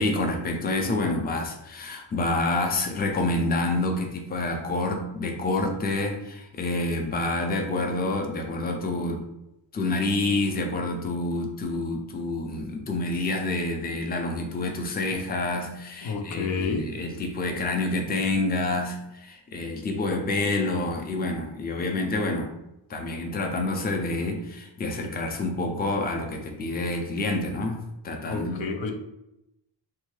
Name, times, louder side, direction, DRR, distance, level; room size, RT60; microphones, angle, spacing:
voice 1, 0.0-9.2 9.7-22.5 22.9-28.6, left 2 dB, 20° left, 3 dB, 0.4 m, -28 dB
voice 2, 16.0-16.9 28.2-28.9, left 5 dB, 85° left, 4 dB, 0.5 m, -29 dB
2.7 x 2.2 x 3.0 m, 0.89 s
wide cardioid pair, 100°, 44 cm